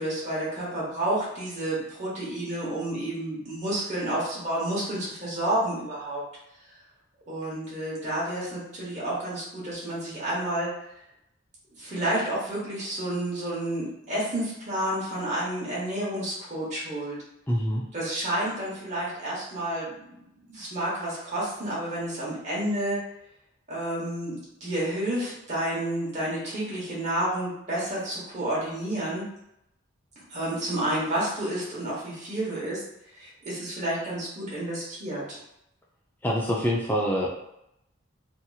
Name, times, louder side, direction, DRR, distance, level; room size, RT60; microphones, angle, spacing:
voice 1, 0.0-6.2 7.3-10.7 11.8-17.2 17.9-20.2 20.5-23.0 23.7-29.3 30.3-32.8 33.1-35.4, right 1 dB, 35° right, -7 dB, 1.0 m, -30 dB
voice 2, 17.5-17.8 36.2-37.3, equal, 10° left, -3 dB, 0.3 m, -25 dB
2.8 x 2.7 x 2.3 m, 0.80 s
head